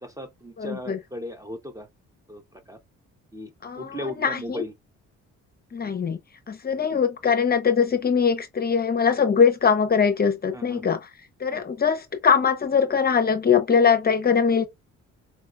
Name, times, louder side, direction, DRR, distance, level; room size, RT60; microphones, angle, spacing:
voice 1, 0.0-1.9 2.3-2.8 3.3-4.7 10.5-10.8 11.5-11.6, left 1 dB, 10° right, 0.5 m, -37 dB
voice 2, 0.6-1.0 3.6-4.6 5.7-6.2 6.5-11.0 11.4-14.7, left 6 dB, 30° left, 0.6 m, -22 dB
4.3 x 2.2 x 2.2 m
cardioid pair, 90°, 30 cm